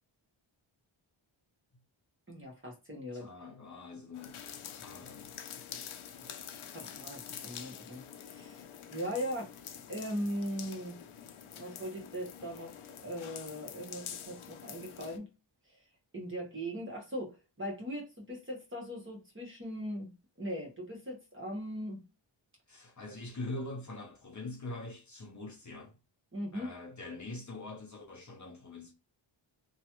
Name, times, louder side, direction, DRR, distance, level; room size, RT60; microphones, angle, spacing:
voice 1, 2.3-3.3 6.7-8.0 8.3-8.6 8.9-9.5 9.9-11.0 11.6-12.8 13.0-15.3 16.1-20.1 20.4-22.0 26.3-26.8, equal, 25° right, 1.2 m, -39 dB
voice 2, 3.1-5.9 6.2-6.4 7.3-7.4 22.7-26.0 26.5-28.9, left 2 dB, 35° left, 0.7 m, -44 dB
sound 1, 4.1-15.2, left 8 dB, 80° left, 0.6 m, -47 dB
2.9 x 2.3 x 3.0 m
wide cardioid pair, 135°, 48 cm